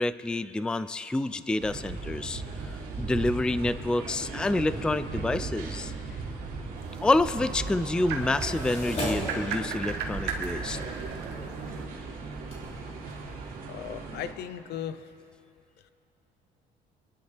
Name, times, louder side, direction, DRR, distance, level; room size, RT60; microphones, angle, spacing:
voice 1, 0.0-2.4 3.0-5.9 7.0-10.8, left 2 dB, 5° left, 14 dB, 0.3 m, -28 dB
sound 1, 1.6-14.3, right 4 dB, 55° right, 2.6 m, -37 dB
sound 2, 6.8-11.9, right 5 dB, 80° right, 1.4 m, -37 dB
sound 3, 8.2-13.5, equal, 40° left, 3.5 m, -39 dB
voice 2, 13.7-15.1 15.8-15.9, left 9 dB, 75° left, 13 dB, 0.7 m, -38 dB
25.5 x 11.0 x 3.3 m, 2.7 s
cardioid pair, 110°, 17 cm